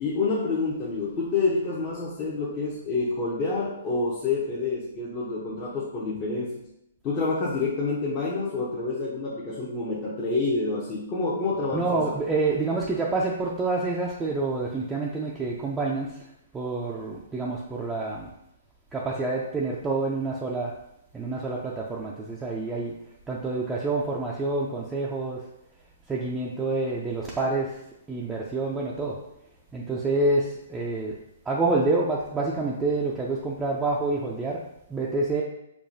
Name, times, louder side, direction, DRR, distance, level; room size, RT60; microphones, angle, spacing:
voice 1, 0.0-6.5 7.0-12.1, left 3 dB, 30° left, -7 dB, 0.7 m, -28 dB
voice 2, 11.7-16.1 16.5-18.3 18.9-20.7 21.1-22.9 23.3-25.4 26.1-27.8 28.1-29.2 29.7-31.2 31.5-34.6 34.9-35.4, right 3 dB, 10° right, -4 dB, 0.4 m, -27 dB
4.7 x 2.3 x 2.6 m, 0.82 s
hypercardioid pair, 130°, 0 cm